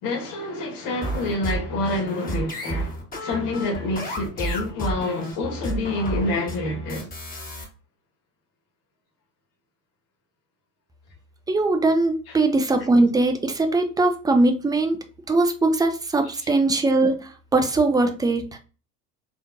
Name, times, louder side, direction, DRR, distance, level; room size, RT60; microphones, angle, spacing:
voice 1, 0.0-7.1 12.3-12.4 16.4-16.5, left 2 dB, 45° left, 1.6 m, -27 dB
sound 1, 1.0-7.6, right 1 dB, 20° left, 1.8 m, -31 dB
voice 2, 11.5-15.0 15.3-18.6, right 2 dB, 10° right, 0.6 m, -21 dB
4.5 x 3.5 x 2.5 m
figure-of-eight pair, 70°, 47 cm